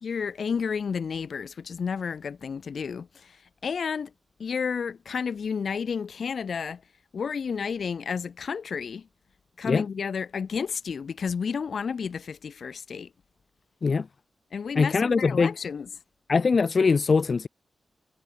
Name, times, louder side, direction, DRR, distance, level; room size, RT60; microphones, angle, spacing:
voice 1, 0.0-3.4 3.6-4.1 4.4-6.8 7.1-9.1 9.6-13.1 14.5-15.9, left 6 dB, 60° left, 1.3 m, -31 dB
voice 2, 14.8-15.5 16.3-17.5, left 4 dB, 45° left, 0.3 m, -22 dB
wide cardioid pair, 135°, 0 cm